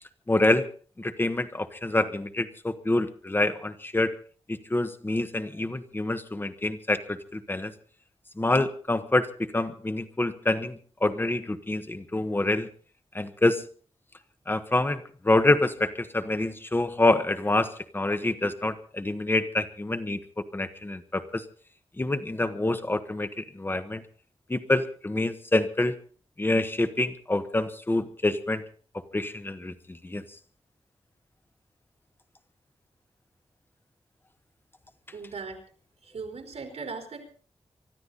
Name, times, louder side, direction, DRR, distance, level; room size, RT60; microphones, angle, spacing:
voice 1, 0.3-0.7 1.0-4.1 4.5-7.7 8.4-12.7 13.1-13.6 14.5-21.4 22.0-24.0 24.5-26.0 26.4-28.6 29.1-30.2, left 2 dB, 20° left, 11 dB, 1.3 m, -26 dB
voice 2, 35.1-35.6 36.0-37.3, right 4 dB, 80° right, 4 dB, 4.1 m, -38 dB
24.5 x 13.0 x 4.1 m, 0.41 s
wide cardioid pair, 130°, 11 cm